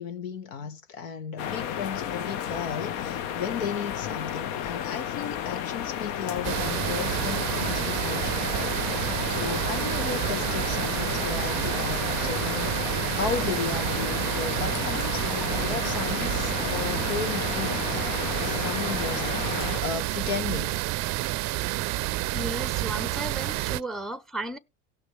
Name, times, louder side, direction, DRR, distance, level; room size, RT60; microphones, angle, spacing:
voice 1, 0.0-8.8 9.3-20.8 23.5-23.6, left 7 dB, 85° left, 1.6 m, -35 dB
sound 1, 1.4-19.8, left 9 dB, 65° left, 1.1 m, -32 dB
sound 2, 6.4-23.8, right 18 dB, 45° right, 0.5 m, -29 dB
voice 2, 22.3-24.6, right 2 dB, ahead, 0.7 m, -34 dB
17.5 x 6.1 x 3.2 m
supercardioid pair, 95°, 38 cm